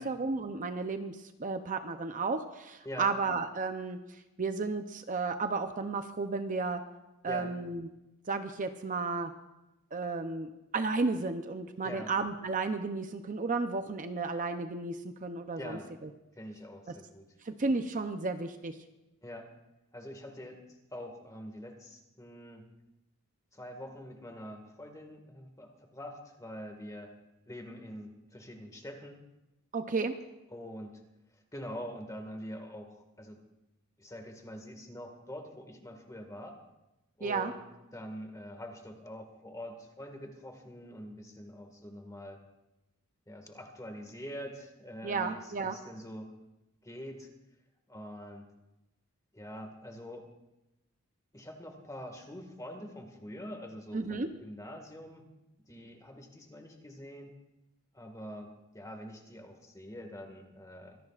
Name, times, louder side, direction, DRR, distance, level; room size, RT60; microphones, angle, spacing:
voice 1, 0.0-4.0 4.4-6.8 7.2-7.9 8.3-9.3 9.9-16.1 16.9-17.0 17.4-18.8 29.7-30.1 37.2-37.5 45.0-45.8 53.9-54.3, right 4 dB, 40° right, 7 dB, 0.6 m, -33 dB
voice 2, 15.5-15.9 16.4-17.3 19.2-19.5 19.9-20.6 20.9-22.7 23.5-27.1 27.5-29.2 30.5-31.0 31.5-33.4 34.0-36.6 37.2-37.6 37.9-42.4 43.3-46.3 46.8-47.3 47.9-48.5 49.3-50.3 51.3-55.3 55.7-57.3 57.9-61.0, equal, 15° left, 4 dB, 1.8 m, -45 dB
24.0 x 17.0 x 2.5 m, 0.96 s
head